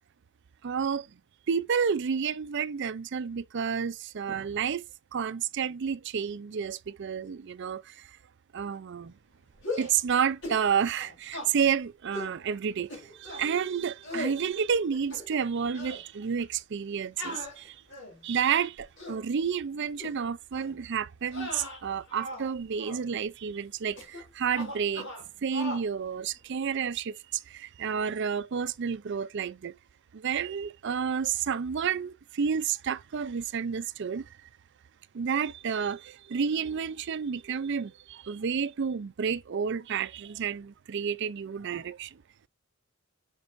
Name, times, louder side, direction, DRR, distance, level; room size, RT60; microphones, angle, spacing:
voice 1, 0.6-1.1 1.5-4.8 5.1-8.2 8.5-9.1 9.8-17.8 18.2-25.1 25.4-29.7 30.1-34.4 35.1-42.2, right 7 dB, 55° right, 0.4 m, -30 dB
sound 1, 9.6-10.0 10.4-10.6 10.9-11.5 12.1-12.4 12.9-13.5 14.0-14.4 14.9-15.5 15.7-16.0 17.2-18.2 18.8-19.2 20.0-20.1 20.5-20.7 21.3-22.5 22.8-23.0 24.0-24.2 24.5-25.2 25.5-25.9, left 1 dB, 55° left, 3.5 m, -38 dB
7.7 x 5.3 x 2.5 m
head